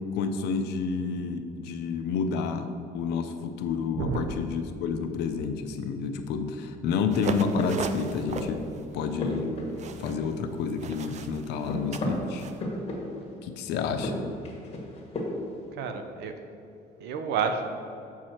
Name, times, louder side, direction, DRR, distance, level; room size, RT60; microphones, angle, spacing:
voice 1, 0.1-8.7 8.9-9.6 10.0-12.5 13.4-14.3, left 5 dB, 85° left, 7 dB, 0.6 m, -30 dB
sound 1, 7.1-12.6, right 6 dB, 45° right, 0.4 m, -39 dB
steps on wood, 7.6-8.7 9.0-10.5 10.8-13.4 13.9-15.6, left 1 dB, 35° left, 1.6 m, -34 dB
voice 2, 15.7-16.3 17.0-17.6, right 6 dB, 80° right, 7 dB, 0.7 m, -30 dB
7.4 x 4.8 x 4.4 m, 2.8 s
cardioid pair, 110°, 17 cm